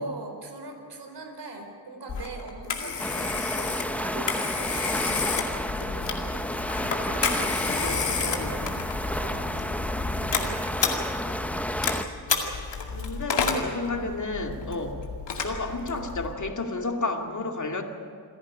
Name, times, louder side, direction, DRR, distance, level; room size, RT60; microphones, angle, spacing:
voice 1, 0.0-10.6 13.0-13.6 13.9-14.1, right 2 dB, 75° right, 4 dB, 4.3 m, -41 dB
Telephone, 2.1-16.3, left 5 dB, 90° left, 2.3 m, -31 dB
sound 1, 3.0-12.0, left 1 dB, 5° left, 1.0 m, -31 dB
voice 2, 7.4-8.6 12.9-15.0 15.4-17.8, left 3 dB, 45° left, 3 dB, 2.4 m, -32 dB
28.0 x 11.0 x 9.9 m, 2.3 s
cardioid pair, 65°, 41 cm